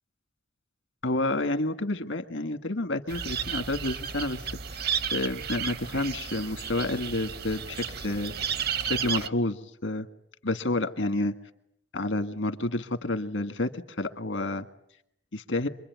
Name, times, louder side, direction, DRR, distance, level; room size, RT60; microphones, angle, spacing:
voice 1, 1.0-4.4 4.7-8.3 8.8-10.1 10.4-11.3 11.9-14.7 15.3-15.7, left 2 dB, 85° left, 9 dB, 1.7 m, -29 dB
sound 1, 3.1-9.3, right 7 dB, 55° right, 1.1 m, -33 dB
26.5 x 22.5 x 9.4 m, 0.75 s
head